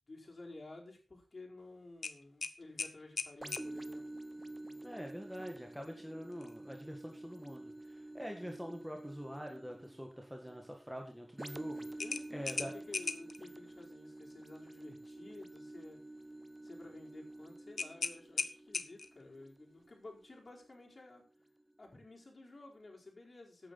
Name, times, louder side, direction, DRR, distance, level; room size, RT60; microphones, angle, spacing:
voice 1, 0.1-4.1 12.0-16.0 16.6-21.2 21.8-23.7, left 2 dB, 40° left, -2 dB, 4.6 m, -53 dB
sound 1, 2.0-3.7 6.3-6.5 7.0-7.1 12.0-13.4 17.8-19.2, left 4 dB, 70° left, 1.0 m, -38 dB
sound 2, 3.4-20.9 21.5-21.6, right 1 dB, 20° right, 0.8 m, -49 dB
voice 2, 4.8-11.9 12.3-12.7, equal, ahead, 2 dB, 1.8 m, -45 dB
13.5 x 9.2 x 4.2 m, 0.35 s
wide cardioid pair, 105°, 0 cm